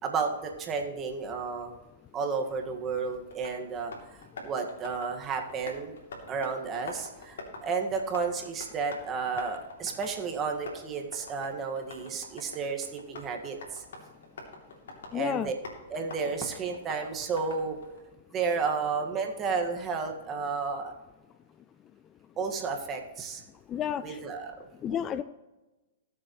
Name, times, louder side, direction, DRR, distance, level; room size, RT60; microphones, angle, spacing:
voice 1, 0.0-1.7 2.1-4.2 4.4-5.9 6.3-13.8 15.1-15.5 15.9-17.8 18.3-20.9 22.4-23.4 24.0-24.7, right 5 dB, 25° right, 3 dB, 1.8 m, -32 dB
Tap, 2.5-18.0, left 3 dB, 85° left, 3.0 m, -46 dB
voice 2, 15.1-15.5 23.7-24.2 24.8-25.2, left 9 dB, 25° left, 14 dB, 0.3 m, -30 dB
19.5 x 7.6 x 3.2 m, 1.1 s
hypercardioid pair, 135°, 0 cm